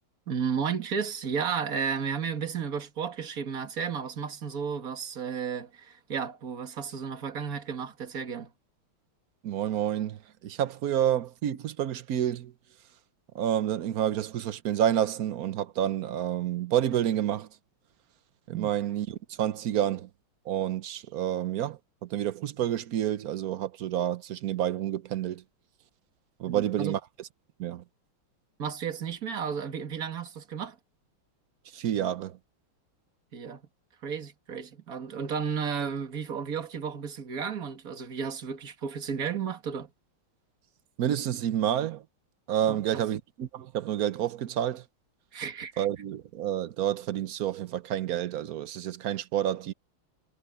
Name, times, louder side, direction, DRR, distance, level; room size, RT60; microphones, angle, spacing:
voice 1, 0.3-8.5 18.5-18.7 26.5-27.0 28.6-30.8 33.3-33.6 34.0-39.9 42.7-43.0 45.3-45.9, right 6 dB, 40° right, 2.3 m, -33 dB
voice 2, 9.4-10.2 10.4-12.5 13.3-17.5 18.5-20.1 20.5-25.4 26.4-27.0 27.6-27.8 31.7-32.4 41.0-42.0 42.5-44.8 45.8-49.7, right 11 dB, 65° right, 0.9 m, -29 dB
omnidirectional pair, 2.4 m